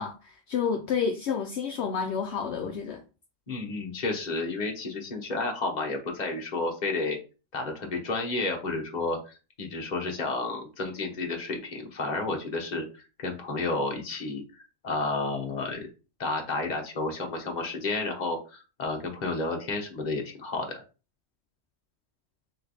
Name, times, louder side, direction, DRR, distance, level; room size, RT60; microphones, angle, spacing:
voice 1, 0.0-3.0, left 6 dB, 65° left, 0.8 m, -30 dB
voice 2, 3.5-7.2 7.5-14.4 14.8-15.9 16.2-20.7, left 3 dB, 35° left, 1.0 m, -31 dB
3.8 x 3.2 x 3.9 m
omnidirectional pair, 1.3 m